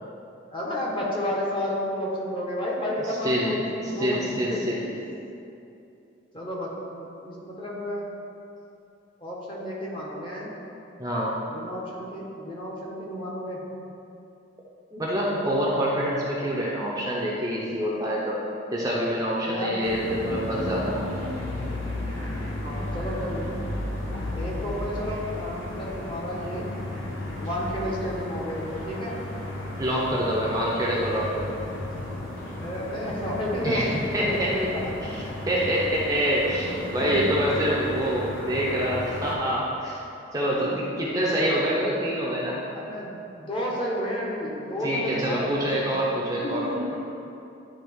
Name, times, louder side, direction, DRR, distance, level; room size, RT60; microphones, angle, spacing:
voice 1, 0.5-4.9 6.3-8.0 9.2-10.5 11.5-13.6 16.0-16.2 19.4-19.7 22.6-23.5 24.3-26.7 27.4-29.1 32.6-34.8 36.0-36.1 36.8-37.5 40.6-40.7 42.7-45.9 46.4-46.8, left 1 dB, 25° left, -4 dB, 1.1 m, -31 dB
voice 2, 3.0-3.6 4.0-4.8 11.0-11.3 14.9-18.4 18.7-21.0 29.8-31.6 33.6-34.5 35.0-35.2 35.4-40.0 40.3-42.6 44.8-47.0, equal, 20° right, -5 dB, 0.6 m, -26 dB
sound 1, 19.8-39.4, left 1 dB, 80° left, 1.0 m, -34 dB
10.0 x 3.5 x 3.6 m, 2.7 s
head